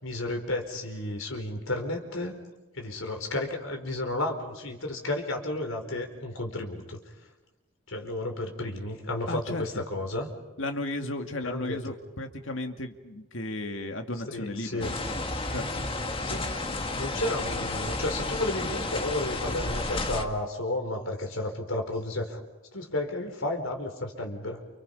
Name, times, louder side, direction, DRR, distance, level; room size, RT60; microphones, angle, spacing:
voice 1, 0.0-2.4 2.7-7.0 7.9-10.3 11.4-11.9 14.3-14.9 16.2-16.5 17.0-22.4 22.7-24.6, left 2 dB, 85° left, 4 dB, 4.8 m, -32 dB
voice 2, 9.3-9.6 10.6-14.9 15.5-15.8, left 2 dB, 70° left, 5 dB, 2.2 m, -34 dB
sound 1, 14.8-20.3, left 2 dB, 25° left, 1.9 m, -31 dB
29.5 x 29.0 x 5.6 m, 1.1 s
head